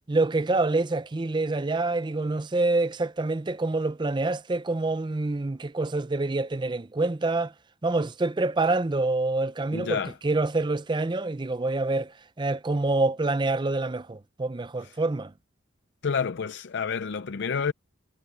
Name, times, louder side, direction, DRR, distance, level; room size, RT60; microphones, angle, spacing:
voice 1, 0.1-7.5 7.8-15.3, right 2 dB, 20° right, 0.5 m, -26 dB
voice 2, 9.7-10.1 14.8-14.9 16.0-17.7, left 6 dB, 55° left, 0.5 m, -29 dB
head